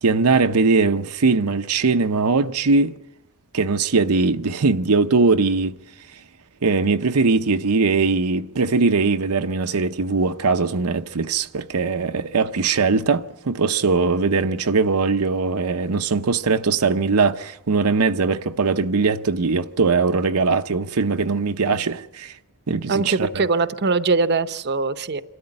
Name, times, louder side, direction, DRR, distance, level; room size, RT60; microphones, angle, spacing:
voice 1, 0.0-2.9 3.5-5.8 6.6-22.3 22.7-23.5, right 4 dB, 80° right, 0.8 m, -20 dB
voice 2, 22.9-25.2, right 4 dB, 50° right, 0.8 m, -21 dB
26.5 x 13.0 x 9.7 m
head